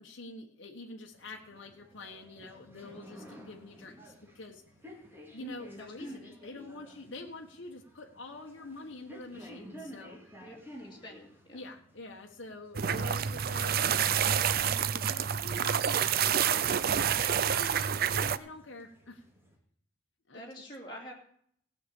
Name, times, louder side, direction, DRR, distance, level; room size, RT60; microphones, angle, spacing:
voice 1, 0.0-4.6 5.3-10.3 11.5-15.9 16.4-19.2 20.3-20.4, left 2 dB, 60° left, 1 dB, 1.3 m, -46 dB
sound 1, 1.1-19.6, equal, 10° right, 2.1 m, -52 dB
voice 2, 10.8-11.6 20.3-21.1, equal, 25° left, -3 dB, 2.8 m, -46 dB
sound 2, 12.7-18.4, right 8 dB, 45° right, 0.4 m, -28 dB
15.5 x 5.8 x 8.3 m, 0.65 s
head